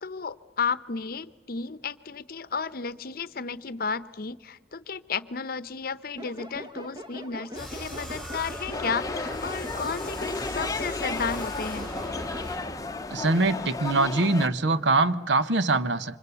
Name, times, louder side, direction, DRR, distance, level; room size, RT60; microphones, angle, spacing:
voice 1, 0.0-11.9, left 5 dB, 55° left, 0.8 m, -33 dB
sound 1, 6.2-12.5, equal, 25° right, 1.2 m, -41 dB
sound 2, 7.5-12.5, equal, ahead, 7.9 m, -40 dB
sound 3, 8.7-14.5, left 3 dB, 20° left, 0.8 m, -33 dB
voice 2, 13.1-16.2, right 2 dB, 90° right, 0.9 m, -23 dB
27.5 x 25.5 x 6.9 m
head